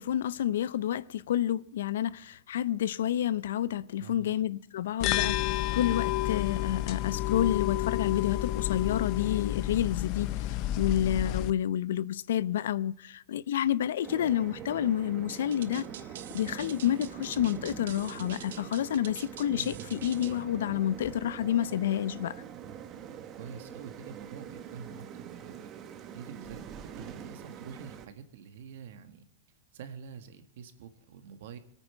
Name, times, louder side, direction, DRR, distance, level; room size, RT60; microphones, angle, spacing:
voice 1, 0.0-5.4 5.7-10.3 10.8-15.9 16.3-22.4, left 11 dB, 85° left, 0.5 m, -29 dB
voice 2, 4.0-4.5 5.1-5.4 19.5-19.9 23.4-25.7 26.1-29.2 29.7-31.6, right 7 dB, 65° right, 1.6 m, -46 dB
sound 1, 5.0-11.5, left 15 dB, 35° left, 0.5 m, -30 dB
sound 2, 14.0-28.1, right 8 dB, 25° right, 0.9 m, -44 dB
sound 3, 15.3-20.4, right 10 dB, 85° right, 1.0 m, -47 dB
22.5 x 9.1 x 4.5 m
supercardioid pair, 170°, 0 cm